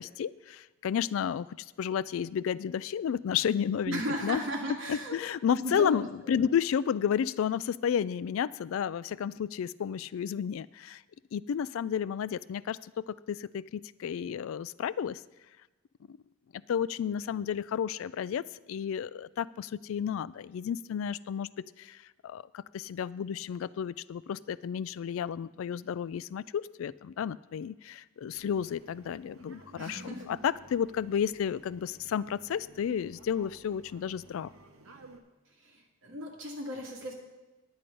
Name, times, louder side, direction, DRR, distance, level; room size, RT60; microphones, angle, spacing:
voice 1, 0.0-4.4 4.9-11.0 11.3-15.2 16.1-16.2 16.7-18.4 18.7-21.5 21.8-34.5, left 8 dB, 75° left, 18 dB, 0.3 m, -32 dB
voice 2, 3.9-5.2 5.6-6.3 29.8-30.4 35.6-37.1, equal, 65° right, -1 dB, 2.2 m, -36 dB
sound 1, 28.3-35.2, right 2 dB, 85° right, 1.1 m, -55 dB
9.9 x 8.5 x 5.3 m, 1.1 s
head